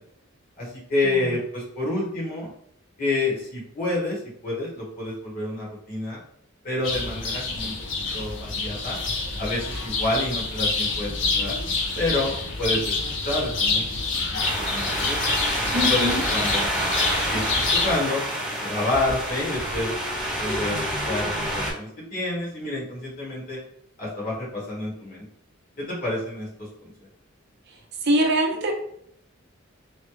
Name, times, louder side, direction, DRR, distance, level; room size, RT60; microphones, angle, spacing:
voice 1, 0.6-2.5 3.0-6.2 6.6-7.7 8.1-9.0 9.4-11.6 11.9-13.0 13.2-14.0 14.3-14.4 14.7-15.2 15.7-16.7 17.2-18.2 18.6-19.9 20.4-20.8 21.0-23.6 24.0-25.2 25.8-26.9, left 2 dB, 45° left, -6 dB, 1.5 m, -28 dB
sound 1, 6.8-18.0, left 3 dB, 60° left, 0.6 m, -27 dB
sound 2, 14.4-21.7, equal, 5° right, 1.0 m, -28 dB
voice 2, 15.7-16.2 28.0-28.7, equal, 50° right, 1 dB, 0.5 m, -23 dB
3.2 x 2.2 x 3.1 m, 0.68 s
head